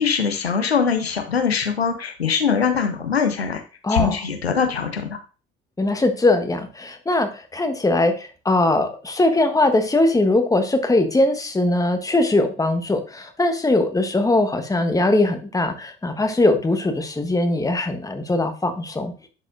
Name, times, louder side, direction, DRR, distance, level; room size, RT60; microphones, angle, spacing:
voice 1, 0.0-3.6 3.9-5.2, left 6 dB, 85° left, 5 dB, 0.8 m, -22 dB
voice 2, 3.8-4.1 5.8-19.1, left 2 dB, 10° left, 7 dB, 1.2 m, -20 dB
11.0 x 4.2 x 2.6 m, 0.34 s
figure-of-eight pair, 55°, 30 cm